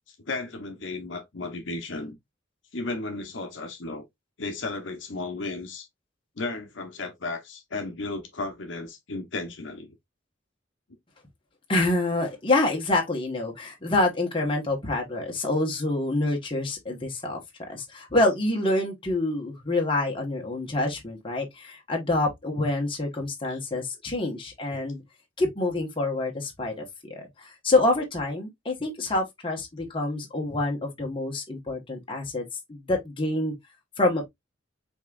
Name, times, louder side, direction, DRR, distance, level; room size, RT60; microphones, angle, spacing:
voice 1, 0.3-2.2 2.7-4.0 4.4-5.9 6.4-10.0 23.5-23.8 24.7-24.8, left 3 dB, 70° left, 1.0 m, -34 dB
voice 2, 11.7-17.4 17.7-25.0 25.4-32.4 32.7-33.5 34.0-34.3, left 2 dB, 25° left, 1.4 m, -27 dB
5.3 x 3.7 x 2.4 m
head